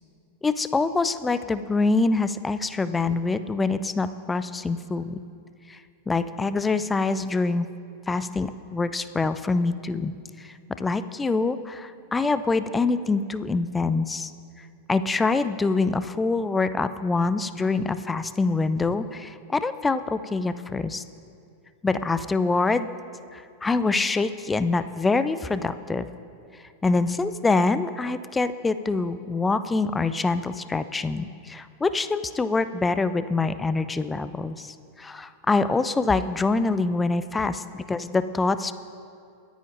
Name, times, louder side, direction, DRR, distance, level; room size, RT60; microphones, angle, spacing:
voice 1, 0.4-5.2 5.7-5.8 6.1-7.7 8.1-14.3 14.9-21.0 21.8-22.9 23.3-26.1 26.8-38.7, left 3 dB, 10° left, 13 dB, 0.4 m, -25 dB
22.5 x 10.0 x 2.6 m, 2.5 s
figure-of-eight pair, 90°, 0 cm